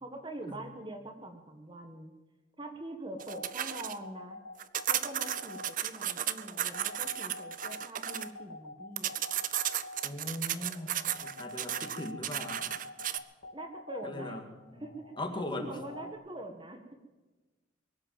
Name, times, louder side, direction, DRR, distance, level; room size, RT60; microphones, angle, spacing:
voice 1, 0.0-2.1 2.6-4.4 4.9-9.1 13.5-14.4 14.8-15.1 15.5-16.8, right 1 dB, 25° right, 5 dB, 1.6 m, -44 dB
sound 1, 3.2-16.1, left 2 dB, 75° left, 2.5 m, -46 dB
sound 2, 3.2-4.0 4.6-8.3 9.0-13.2, right 11 dB, 45° right, 0.6 m, -34 dB
voice 2, 10.0-10.9 11.2-12.8 14.0-14.9 15.2-15.8, left 1 dB, 25° left, 4 dB, 2.1 m, -39 dB
23.0 x 8.1 x 7.6 m, 1.2 s
head